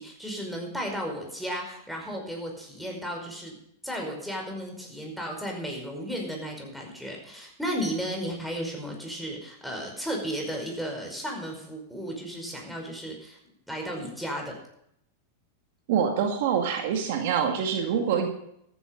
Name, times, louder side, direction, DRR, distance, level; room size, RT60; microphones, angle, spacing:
voice 1, 0.0-3.5 3.8-13.4 13.7-14.6, equal, ahead, 0 dB, 5.1 m, -34 dB
voice 2, 15.9-18.3, right 7 dB, 60° right, 4 dB, 2.0 m, -25 dB
14.0 x 10.0 x 5.3 m, 0.73 s
hypercardioid pair, 100°, 0 cm